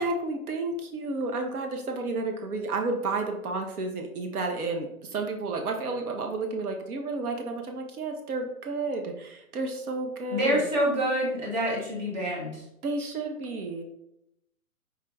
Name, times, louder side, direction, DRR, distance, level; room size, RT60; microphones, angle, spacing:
voice 1, 0.0-10.7 12.8-13.8, right 3 dB, 85° right, 3 dB, 0.9 m, -31 dB
voice 2, 10.3-12.6, equal, 30° right, -3 dB, 0.9 m, -27 dB
4.9 x 2.3 x 3.2 m, 0.81 s
hypercardioid pair, 175°, 44 cm